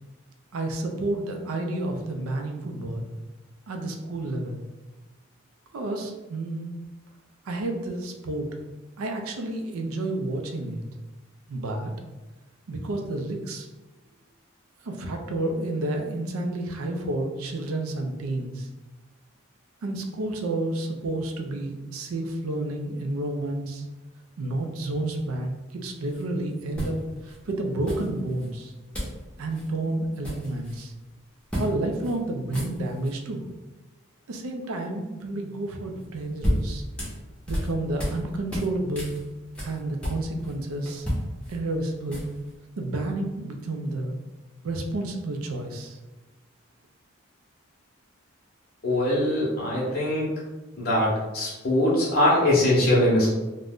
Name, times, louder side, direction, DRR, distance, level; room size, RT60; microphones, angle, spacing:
voice 1, 0.5-3.0 3.7-4.6 5.7-6.8 7.5-8.5 9.0-10.8 11.5-11.9 12.7-13.7 14.8-18.7 19.8-23.8 24.4-27.0 27.2-28.7 29.4-30.9 31.6-33.4 34.3-36.8 37.5-39.1 39.6-41.1 41.5-42.2 42.8-44.2 44.6-46.0, right 2 dB, 85° right, 3 dB, 0.4 m, -30 dB
sound 1, 26.1-26.2 26.7-27.4 27.9-28.5 28.9-29.2 29.5-29.7 30.0-30.9 31.5-31.7 32.0-32.1 32.4-33.1 36.0-38.2 38.5-40.5 40.9-42.5, equal, 5° left, 0.6 m, -32 dB
voice 2, 48.8-50.3 50.8-53.3, left 1 dB, 45° left, -6 dB, 0.6 m, -22 dB
2.5 x 2.1 x 3.4 m, 1.1 s
head